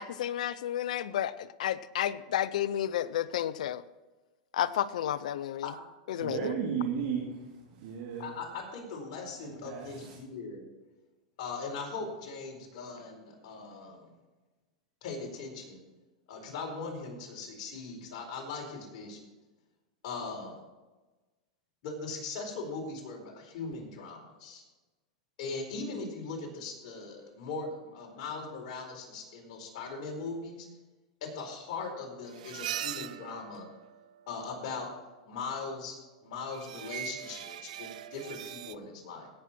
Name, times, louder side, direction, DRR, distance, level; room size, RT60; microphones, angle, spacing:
voice 1, 0.0-3.8 4.5-5.7 6.1-6.5, left 11 dB, 80° left, 17 dB, 0.6 m, -31 dB
voice 2, 6.2-8.3 9.4-10.1, right 7 dB, 65° right, -2 dB, 2.4 m, -34 dB
voice 3, 8.2-10.7 11.4-14.1 15.0-15.8 16.3-19.3 20.0-20.5 21.8-24.6 25.4-30.7 31.2-33.7 34.3-34.9 35.2-39.3, left 4 dB, 60° left, 0 dB, 4.4 m, -40 dB
sound 1, 32.3-34.4 36.5-38.7, right 11 dB, 80° right, 0.5 m, -40 dB
17.5 x 7.6 x 4.4 m, 1.2 s
hypercardioid pair, 115°, 4 cm